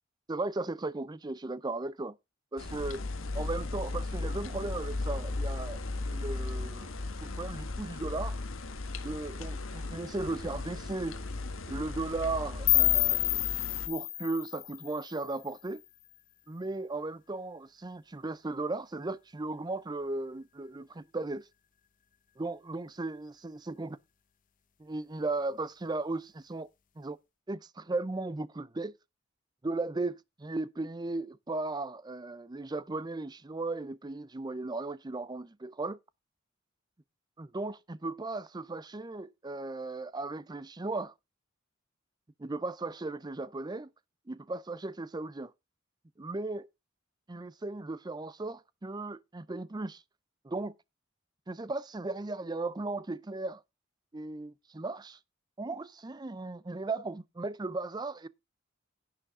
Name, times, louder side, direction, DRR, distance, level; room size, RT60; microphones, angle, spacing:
voice 1, 0.3-2.2 2.5-3.0 3.3-5.8 6.1-8.4 9.0-11.2 11.7-13.4 13.9-15.8 16.5-21.5 22.4-24.0 24.8-26.7 27.0-27.2 27.5-28.9 29.6-36.0 37.4-41.1 42.4-43.9 44.3-45.5 46.2-46.7 47.3-50.0 50.4-50.7 51.5-53.6 54.1-55.2 55.6-58.3, right 2 dB, 20° right, 0.5 m, -36 dB
sound 1, 2.6-13.9, left 2 dB, 80° left, 1.4 m, -36 dB
sound 2, 12.7-15.6, left 16 dB, 40° left, 0.7 m, -28 dB
11.0 x 8.7 x 3.7 m
head